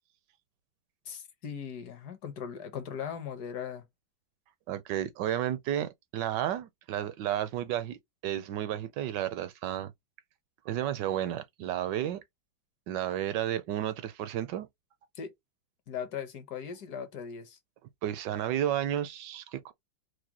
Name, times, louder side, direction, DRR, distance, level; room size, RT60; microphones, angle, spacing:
voice 1, 1.1-3.8 15.1-15.3 15.9-17.6, left 7 dB, 60° left, 1.3 m, -39 dB
voice 2, 4.7-9.9 10.6-12.2 12.9-14.7 18.0-19.7, right 11 dB, 75° right, 1.1 m, -32 dB
4.8 x 2.2 x 2.8 m
omnidirectional pair, 2.0 m